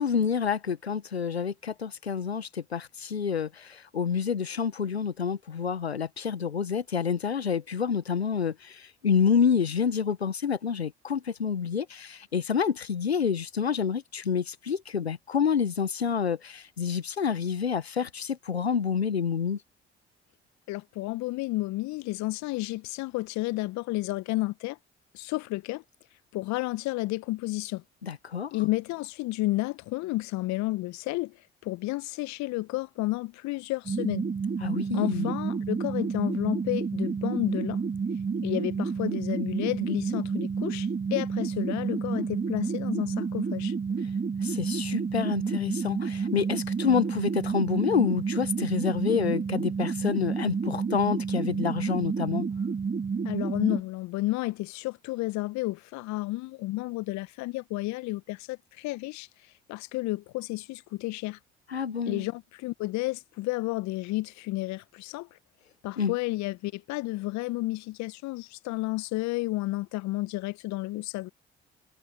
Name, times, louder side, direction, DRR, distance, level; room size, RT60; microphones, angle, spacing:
voice 1, 0.0-19.6 28.0-28.5 34.6-35.3 44.4-52.4 61.7-62.2 66.0-66.2, left 6 dB, 85° left, 1.4 m, -28 dB
voice 2, 20.7-24.8 25.1-25.8 26.3-27.8 28.5-31.4 31.6-34.3 34.9-37.8 38.4-43.7 53.2-59.3 59.7-61.4 62.1-65.4 65.8-71.3, left 20 dB, 60° left, 1.3 m, -31 dB
sound 1, 33.9-53.8, right 5 dB, 30° right, 2.5 m, -30 dB
figure-of-eight pair, 45°, 31 cm